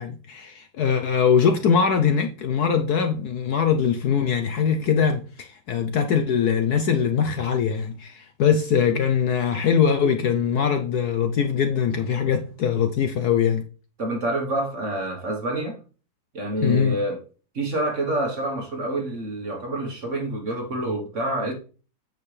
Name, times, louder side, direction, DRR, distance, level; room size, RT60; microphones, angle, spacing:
voice 1, 0.0-13.6 16.6-17.0, left 7 dB, 65° left, 1.0 m, -22 dB
voice 2, 14.0-15.8 16.3-17.2 17.5-21.5, right 1 dB, 40° right, 1.4 m, -27 dB
8.6 x 6.5 x 3.3 m
omnidirectional pair, 2.2 m